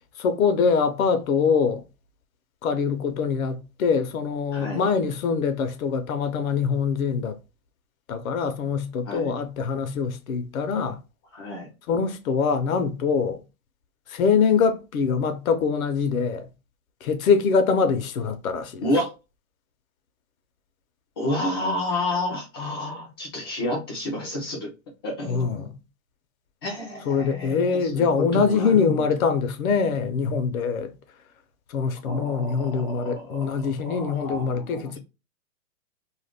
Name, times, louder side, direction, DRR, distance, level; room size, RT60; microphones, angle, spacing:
voice 1, 0.2-1.8 2.6-7.4 8.1-11.0 11.9-13.4 14.1-16.5 17.0-18.9 25.3-25.7 27.1-30.9 31.7-35.0, left 5 dB, 75° left, 0.7 m, -24 dB
voice 2, 4.5-4.9 9.1-9.3 11.3-11.7 18.8-19.1 21.2-24.7 25.0-25.7 26.6-29.1 32.0-33.5 33.9-35.0, left 1 dB, 20° left, 0.3 m, -30 dB
2.5 x 2.1 x 3.4 m
hypercardioid pair, 135°, 42 cm